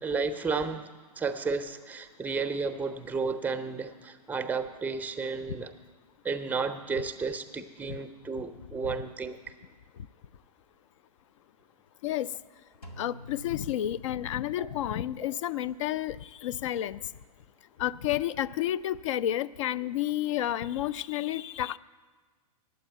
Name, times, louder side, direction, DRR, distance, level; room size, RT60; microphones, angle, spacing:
voice 1, 0.0-0.9 1.2-5.7 6.2-9.4 14.6-14.7, right 4 dB, 10° right, 9 dB, 0.6 m, -32 dB
Drum, 12.8-14.7, equal, 85° left, 1.9 m, -49 dB
voice 2, 13.0-17.0 17.8-21.8, left 12 dB, 50° left, 17 dB, 0.4 m, -30 dB
9.0 x 8.3 x 8.9 m, 1.4 s
figure-of-eight pair, 110°, 20 cm